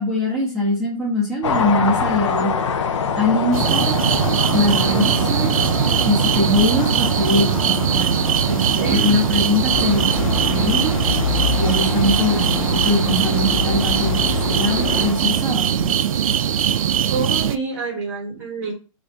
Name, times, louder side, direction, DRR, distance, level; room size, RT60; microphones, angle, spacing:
voice 1, 0.0-2.5 3.2-4.0 4.5-5.5 6.1-8.2 8.5-11.0 11.6-16.1, left 1 dB, 5° right, -8 dB, 0.6 m, -22 dB
sound 1, 1.4-15.7, left 6 dB, 60° left, 0.5 m, -27 dB
sound 2, 3.5-17.6, right 9 dB, 80° right, 0.4 m, -20 dB
voice 2, 4.9-5.5 8.6-9.1 17.1-18.7, right 4 dB, 30° right, -3 dB, 0.9 m, -28 dB
sound 3, 9.7-15.1, left 5 dB, 85° left, 1.0 m, -25 dB
3.3 x 2.6 x 4.0 m, 0.35 s
hypercardioid pair, 170°, 17 cm